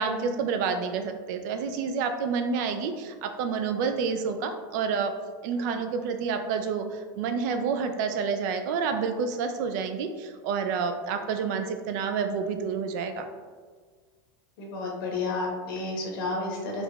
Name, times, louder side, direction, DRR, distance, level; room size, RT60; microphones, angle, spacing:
voice 1, 0.0-5.1 5.4-6.9 7.2-13.2, right 5 dB, 55° right, 7 dB, 0.4 m, -29 dB
voice 2, 14.6-16.8, left 3 dB, 75° left, -1 dB, 1.0 m, -31 dB
3.7 x 3.0 x 2.3 m, 1.5 s
supercardioid pair, 160°, 12 cm